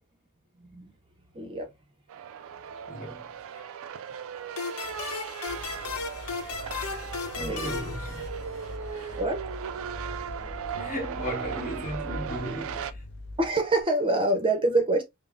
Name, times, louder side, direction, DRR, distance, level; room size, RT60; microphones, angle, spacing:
voice 1, 1.3-1.7 7.4-8.0 9.1-9.4 13.4-15.0, right 2 dB, 25° right, 0.6 m, -26 dB
sound 1, 2.1-12.9, right 7 dB, 65° right, 0.3 m, -38 dB
voice 2, 2.9-3.6 7.4-8.3 8.8-9.2 10.7-13.0, equal, 35° left, 1.3 m, -37 dB
sound 2, 4.6-8.9, left 4 dB, 85° left, 0.8 m, -36 dB
sound 3, 5.5-13.8, left 1 dB, 55° left, 0.6 m, -42 dB
5.3 x 2.0 x 2.4 m
head